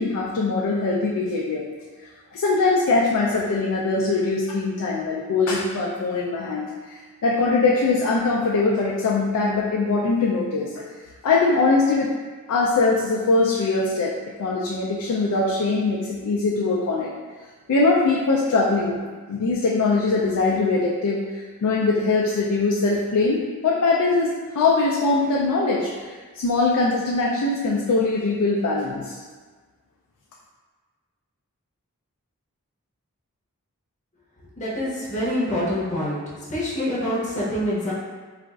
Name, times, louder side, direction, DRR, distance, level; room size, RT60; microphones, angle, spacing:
voice 1, 0.0-1.6 2.3-10.7 11.2-12.1 12.5-14.1 14.4-17.1 17.7-19.0 19.3-29.2, left 3 dB, 85° left, -3 dB, 0.4 m, -22 dB
voice 2, 34.6-36.2 36.5-37.9, equal, 35° left, -7 dB, 0.7 m, -25 dB
4.0 x 2.4 x 2.3 m, 1.5 s
head